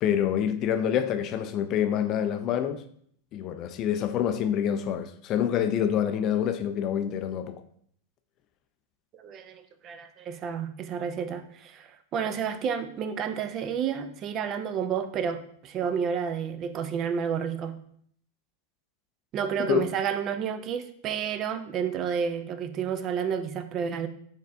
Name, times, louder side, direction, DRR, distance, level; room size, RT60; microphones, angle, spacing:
voice 1, 0.0-2.8 3.3-7.6 19.6-19.9, left 9 dB, 40° left, 0.3 m, -27 dB
voice 2, 9.1-17.8 19.3-24.1, right 7 dB, 35° right, 0.4 m, -30 dB
4.1 x 3.3 x 2.6 m
hypercardioid pair, 105°, 0 cm